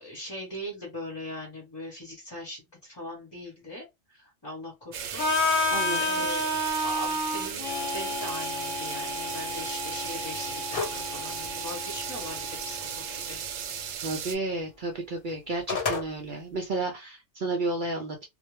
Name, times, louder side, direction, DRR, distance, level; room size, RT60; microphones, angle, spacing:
voice 1, 0.0-6.5 6.8-13.4, left 1 dB, 25° left, 0.7 m, -41 dB
sound 1, 4.9-14.4, right 8 dB, 85° right, 1.0 m, -36 dB
Harmonica, 5.2-13.1, left 2 dB, 85° left, 1.1 m, -31 dB
voice 2, 5.7-6.0 14.0-18.3, right 2 dB, 60° right, 0.5 m, -32 dB
sound 2, 10.7-11.1 11.5-11.6 15.3-16.1, left 5 dB, 50° left, 0.9 m, -29 dB
2.3 x 2.1 x 3.0 m
omnidirectional pair, 1.3 m